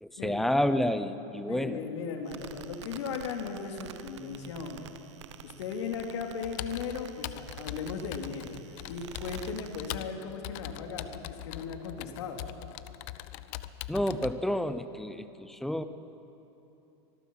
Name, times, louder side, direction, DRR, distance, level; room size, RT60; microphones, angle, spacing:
voice 1, 0.0-1.8 13.9-15.8, left 1 dB, ahead, 11 dB, 0.7 m, -29 dB
voice 2, 1.5-4.9 5.4-12.4, left 5 dB, 75° left, 2 dB, 3.2 m, -37 dB
sound 1, 2.3-9.9, right 9 dB, 85° right, 1.0 m, -48 dB
Computer keyboard, 6.4-14.3, left 16 dB, 50° left, 0.7 m, -41 dB
25.0 x 19.5 x 5.7 m, 2.9 s
supercardioid pair, 145°, 15 cm